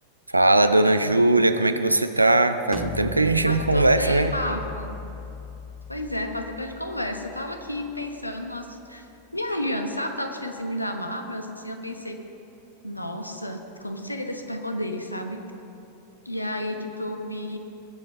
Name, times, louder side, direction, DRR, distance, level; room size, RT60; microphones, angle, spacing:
voice 1, 0.3-4.4, right 2 dB, 85° right, 10 dB, 0.6 m, -20 dB
sound 1, 2.7-8.4, left 4 dB, 5° left, 0.8 m, -37 dB
voice 2, 3.4-5.0 5.9-9.1 9.3-12.2 12.8-15.4 16.2-17.6, left 1 dB, 85° left, 4 dB, 1.1 m, -31 dB
20.5 x 7.6 x 6.1 m, 2.9 s
figure-of-eight pair, 90°, 0 cm